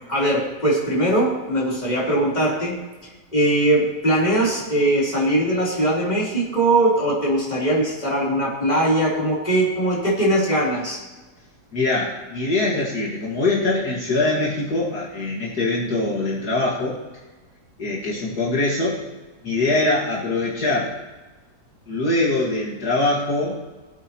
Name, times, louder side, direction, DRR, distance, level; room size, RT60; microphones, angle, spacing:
voice 1, 0.1-2.8 3.3-11.0, right 1 dB, 25° left, -6 dB, 3.8 m, -20 dB
voice 2, 11.7-17.0 17.8-19.0 19.4-21.0 21.9-23.6, left 2 dB, 65° left, -4 dB, 2.5 m, -23 dB
21.5 x 8.4 x 3.0 m, 1.3 s
omnidirectional pair, 1.8 m